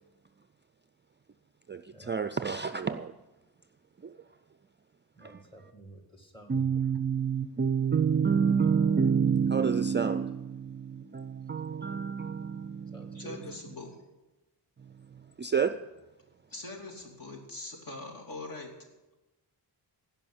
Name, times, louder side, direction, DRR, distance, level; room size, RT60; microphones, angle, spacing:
voice 1, 1.7-3.1 4.0-4.1 5.2-5.4 6.5-13.3 15.4-15.8, right 6 dB, 25° right, 0.4 m, -28 dB
voice 2, 5.2-6.8 12.9-13.4, equal, 10° left, 2.1 m, -50 dB
voice 3, 13.1-14.0 16.5-18.9, left 2 dB, 50° left, 3.0 m, -42 dB
16.5 x 5.5 x 8.7 m
wide cardioid pair, 120°, 43 cm